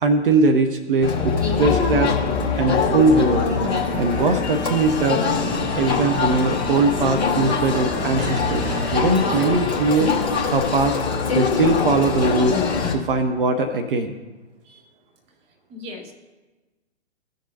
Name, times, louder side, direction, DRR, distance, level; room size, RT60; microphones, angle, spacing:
voice 1, 0.0-1.3 1.6-2.1 2.5-3.5 4.0-5.2 5.7-10.1 10.5-11.0 11.3-12.6 12.9-14.1, right 3 dB, 50° right, 6 dB, 0.8 m, -20 dB
Crowd, 1.0-12.9, left 5 dB, 15° left, 1.0 m, -23 dB
sound 1, 2.8-9.6, right 2 dB, 35° right, 1.4 m, -33 dB
voice 2, 15.7-16.1, left 2 dB, 15° right, 4 dB, 1.0 m, -38 dB
17.5 x 6.5 x 2.7 m, 1.2 s
figure-of-eight pair, 130°, 35 cm